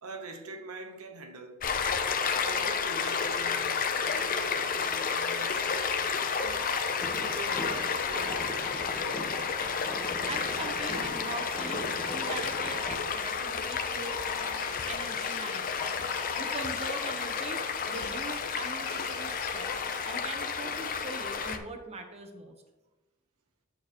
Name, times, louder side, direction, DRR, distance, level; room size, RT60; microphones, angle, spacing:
voice 1, 0.0-1.7 2.4-8.4 9.0-9.4, right 2 dB, 80° right, 0.9 m, -45 dB
Stream, 1.6-21.6, left 6 dB, 40° left, 0.6 m, -31 dB
sound 1, 2.3-20.2, left 6 dB, 85° left, 0.9 m, -44 dB
sound 2, 7.0-13.0, equal, 5° left, 1.0 m, -41 dB
voice 2, 10.0-11.8 12.1-14.2 14.9-15.9 16.4-22.5, right 3 dB, 30° right, 1.0 m, -42 dB
9.0 x 6.4 x 3.0 m
head